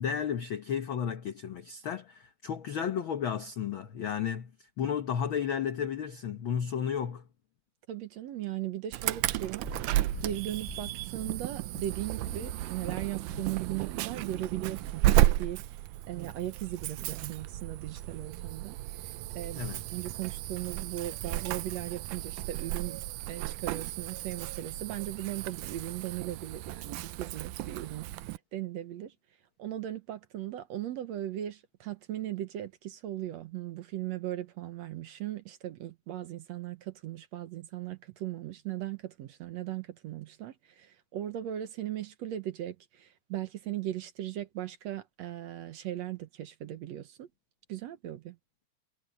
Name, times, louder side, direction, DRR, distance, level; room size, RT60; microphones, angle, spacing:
voice 1, 0.0-4.5 4.8-7.2 19.5-19.8, left 8 dB, 60° left, 1.4 m, -33 dB
voice 2, 7.9-15.6 16.1-18.8 19.4-19.7 19.9-23.0 23.3-29.1 29.6-47.3 47.7-48.4, right 12 dB, 65° right, 2.1 m, -38 dB
Insect / Alarm, 8.9-28.4, right 15 dB, 90° right, 2.2 m, -33 dB
Purr, 9.1-15.5 16.2-16.3, left 5 dB, 45° left, 1.6 m, -48 dB
omnidirectional pair, 3.5 m